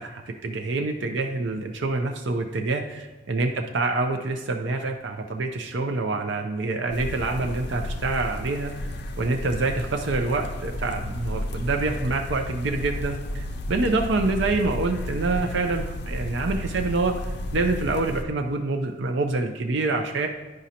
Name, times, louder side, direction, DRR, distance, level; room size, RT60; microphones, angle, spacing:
voice 1, 0.0-17.2 17.5-20.3, right 3 dB, 60° right, 4 dB, 0.5 m, -26 dB
sound 1, 6.9-18.2, left 1 dB, 55° left, 0.6 m, -32 dB
10.5 x 5.0 x 2.8 m, 1.1 s
head